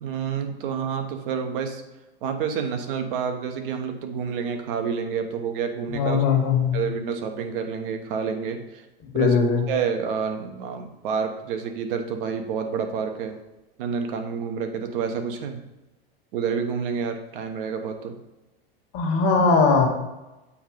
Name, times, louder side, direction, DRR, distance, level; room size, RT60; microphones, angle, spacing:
voice 1, 0.0-1.8 2.2-6.2 6.7-8.8 9.1-9.4 9.7-13.4 13.8-15.6 16.3-18.2, right 6 dB, 60° right, 6 dB, 1.0 m, -28 dB
voice 2, 5.9-6.8 9.1-9.6 18.9-19.9, left 5 dB, 45° left, 2 dB, 1.3 m, -20 dB
7.1 x 2.7 x 5.1 m, 1.0 s
hypercardioid pair, 105°, 31 cm